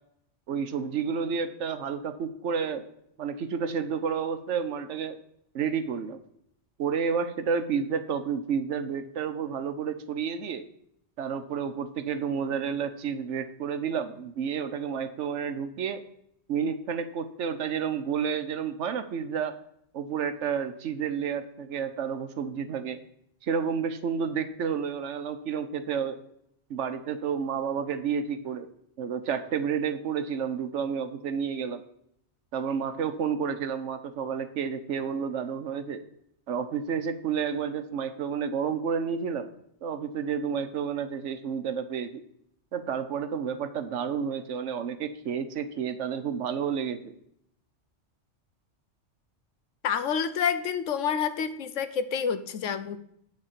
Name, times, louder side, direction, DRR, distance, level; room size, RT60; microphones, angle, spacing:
voice 1, 0.5-2.8 3.2-5.2 5.5-6.2 6.8-10.6 11.2-16.0 16.5-19.6 19.9-23.0 23.4-26.2 26.7-28.7 29.0-31.8 32.5-36.0 36.5-39.5 39.8-42.1 42.7-47.1, right 7 dB, 75° right, 10 dB, 1.1 m, -30 dB
voice 2, 49.8-53.0, left 7 dB, 90° left, 11 dB, 1.1 m, -28 dB
9.3 x 4.3 x 7.3 m, 0.73 s
omnidirectional pair, 1.2 m